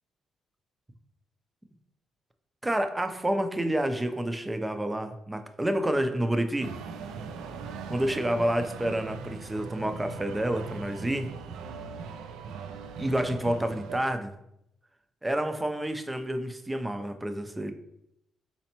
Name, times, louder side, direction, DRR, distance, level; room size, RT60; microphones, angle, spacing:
voice 1, 2.6-6.7 7.9-11.3 13.0-14.3 15.2-17.7, right 1 dB, 10° right, 8 dB, 0.4 m, -29 dB
sound 1, 6.6-14.0, right 5 dB, 90° right, 0.3 m, -40 dB
4.3 x 4.0 x 2.9 m, 0.80 s
cardioid pair, 90°, 0 cm